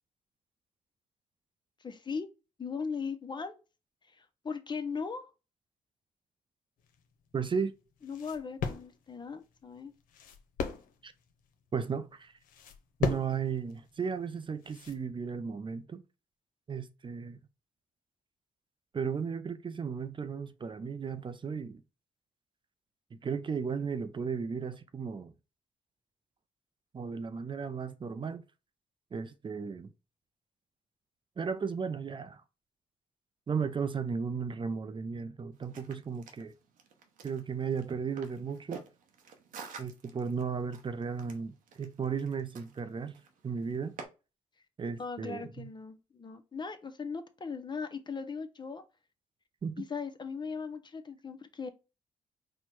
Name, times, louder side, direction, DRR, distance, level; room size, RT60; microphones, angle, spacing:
voice 1, 1.8-2.3 2.6-3.6 4.1-5.3 8.0-9.9 45.0-48.8 49.8-51.7, left 5 dB, 35° left, 0.7 m, -38 dB
sound 1, 6.8-15.0, left 6 dB, 85° left, 0.7 m, -39 dB
voice 2, 7.3-7.7 11.0-11.1 11.7-12.3 13.0-16.0 16.7-17.4 18.9-21.8 23.1-25.3 26.9-28.4 29.1-29.9 31.4-32.4 33.5-36.5 37.2-38.8 39.8-44.0 44.8-45.7 49.6-49.8, right 6 dB, 35° right, 0.5 m, -35 dB
sound 2, 35.5-44.0, right 5 dB, 75° right, 0.8 m, -50 dB
4.4 x 2.2 x 4.5 m
cardioid pair, 65°, 14 cm